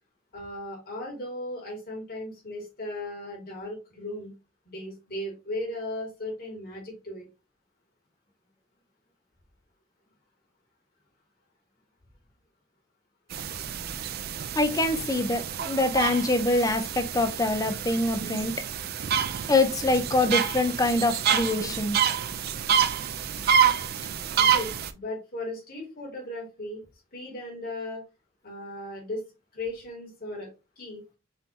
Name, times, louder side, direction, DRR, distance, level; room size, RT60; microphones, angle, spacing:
voice 1, 0.3-4.3 4.7-7.3 15.6-15.7 18.2-18.3 21.6-21.7 24.4-26.8 27.1-28.0 28.4-29.2 29.5-30.5 30.8-31.0, left 1 dB, 45° left, -3 dB, 2.2 m, -36 dB
sound 1, 13.3-24.9, right 8 dB, 45° right, 0.4 m, -28 dB
voice 2, 14.6-18.5 19.5-22.0, left 2 dB, 15° left, 6 dB, 0.5 m, -24 dB
5.6 x 2.7 x 2.8 m, 0.27 s
head